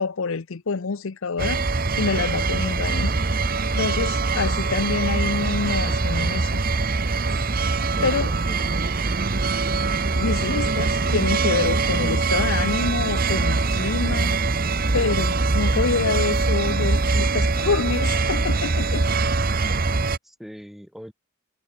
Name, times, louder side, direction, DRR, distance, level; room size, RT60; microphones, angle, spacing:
voice 1, 0.0-1.6 2.0-3.1 3.8-6.6 8.0-8.3 10.1-14.3 14.9-19.1, left 4 dB, 70° left, 0.7 m, -26 dB
sound 1, 1.4-20.2, right 3 dB, 40° right, 1.0 m, -23 dB
voice 2, 2.1-2.5 7.9-8.9 19.2-19.3 19.9-21.1, equal, ahead, 7.7 m, -43 dB
head